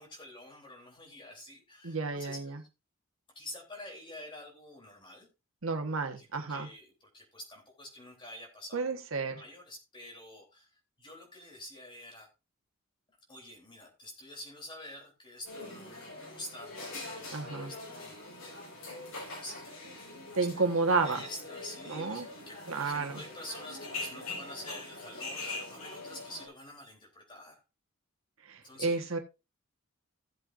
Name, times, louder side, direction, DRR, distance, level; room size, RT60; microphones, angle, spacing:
voice 1, 0.0-2.7 3.3-5.3 6.2-12.3 13.1-16.8 17.0-18.2 18.9-20.6 21.0-27.6 28.6-29.1, left 1 dB, 25° left, 0 dB, 3.4 m, -48 dB
voice 2, 1.8-2.6 5.6-6.7 8.7-9.4 17.3-17.7 20.3-21.2 21.9-22.3 22.7-23.2 28.4-29.2, right 3 dB, 80° right, 5 dB, 1.4 m, -31 dB
sound 1, 15.4-26.5, left 2 dB, 80° left, 5.1 m, -43 dB
16.0 x 7.6 x 2.6 m, 0.27 s
head